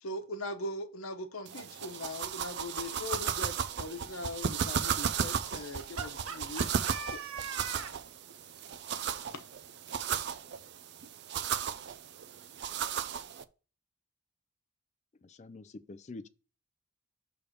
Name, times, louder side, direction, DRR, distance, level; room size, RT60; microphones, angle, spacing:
voice 1, 0.0-6.1 6.4-6.7 7.1-7.2 8.7-9.5, left 2 dB, 90° left, 1.0 m, -40 dB
sound 1, 1.5-13.4, right 7 dB, 55° right, 0.5 m, -35 dB
voice 2, 6.0-7.9, right 5 dB, 85° right, 1.3 m, -41 dB
voice 3, 15.2-16.3, left 3 dB, 35° left, 0.4 m, -46 dB
6.6 x 3.4 x 6.0 m
head